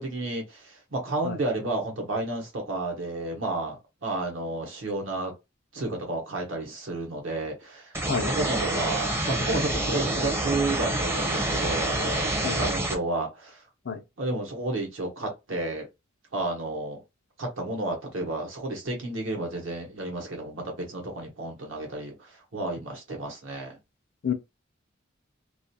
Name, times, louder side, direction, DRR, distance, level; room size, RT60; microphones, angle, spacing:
voice 1, 0.0-5.3 5.7-13.6 14.2-15.9 16.3-17.0 17.4-23.8, right 2 dB, 70° right, 0.9 m, -31 dB
voice 2, 1.2-1.4 8.1-8.3 12.4-12.6 13.9-14.0 24.2-24.3, left 6 dB, 60° left, 0.5 m, -28 dB
sound 1, 7.9-12.9, right 1 dB, 15° right, 0.5 m, -27 dB
2.3 x 2.2 x 2.7 m
head